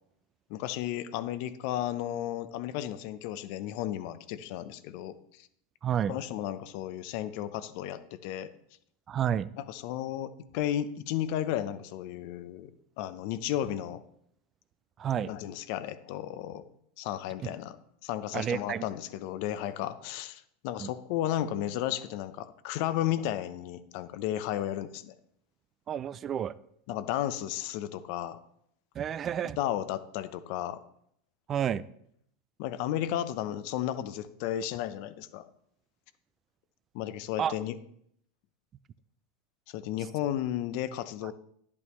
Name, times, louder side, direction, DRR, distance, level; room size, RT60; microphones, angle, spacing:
voice 1, 0.5-5.5 6.1-8.5 9.6-12.7 13.0-14.0 15.3-16.6 17.0-17.8 18.0-25.2 26.9-28.4 29.6-30.8 32.6-35.4 36.9-37.8 39.7-41.3, left 12 dB, 60° left, 13 dB, 0.7 m, -33 dB
voice 2, 5.8-6.1 9.1-9.5 15.0-15.3 17.4-17.5 18.3-18.8 20.8-20.9 25.9-26.5 29.0-29.6 31.5-31.8 37.4-37.5, right 9 dB, 30° right, 17 dB, 0.4 m, -30 dB
10.5 x 8.5 x 3.2 m, 0.70 s
supercardioid pair, 125°, 0 cm